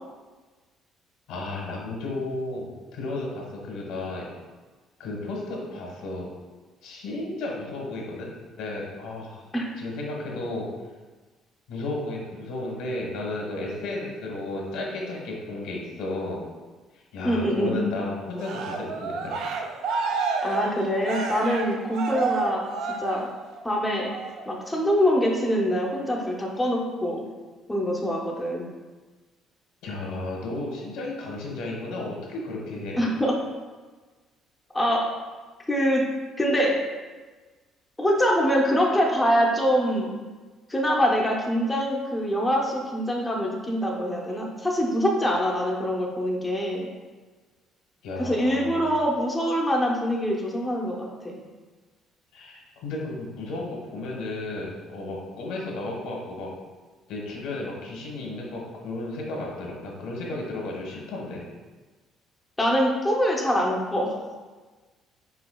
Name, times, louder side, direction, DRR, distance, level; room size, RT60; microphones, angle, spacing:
voice 1, 1.3-4.3 5.0-6.3 6.8-8.3 8.6-9.4 9.8-10.7 11.7-16.4 16.9-19.4 29.8-33.0 44.3-44.4 48.0-48.9 52.3-56.5 57.1-61.4, left 2 dB, 85° left, -2 dB, 1.2 m, -33 dB
voice 2, 17.2-17.9 20.4-22.6 23.0-23.3 23.6-24.1 24.5-27.2 27.7-28.7 33.0-33.4 34.7-35.0 35.7-36.0 36.4-36.7 38.0-40.1 40.7-46.9 48.2-51.4 62.6-64.2, equal, 10° left, -2 dB, 0.5 m, -24 dB
Cheering, 18.4-23.6 24.1-24.5, right 4 dB, 65° right, 0.4 m, -30 dB
4.8 x 4.2 x 2.2 m, 1.3 s
cardioid pair, 145°, 0 cm